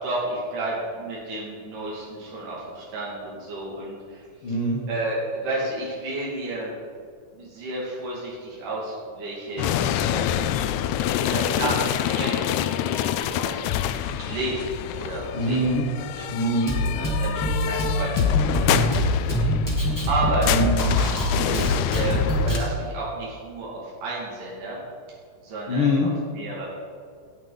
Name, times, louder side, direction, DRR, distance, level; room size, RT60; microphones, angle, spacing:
voice 1, 0.0-4.2 4.9-6.7 7.3-9.7 10.0-10.4 11.2-13.7 14.3-15.6 16.2-16.3 16.9-20.5 21.0-21.1 21.4-24.8 25.4-26.7, right 2 dB, 90° right, -6 dB, 3.8 m, -32 dB
voice 2, 4.4-4.8 15.3-15.9 16.3-16.7 20.4-21.0 25.7-26.1, left 1 dB, 55° left, -1 dB, 1.7 m, -23 dB
modern day war, 9.6-22.6, left 10 dB, 80° left, 1.9 m, -26 dB
Drum kit, 16.7-22.7, equal, 10° left, 0.9 m, -24 dB
17.0 x 8.9 x 3.9 m, 2.1 s
omnidirectional pair, 3.6 m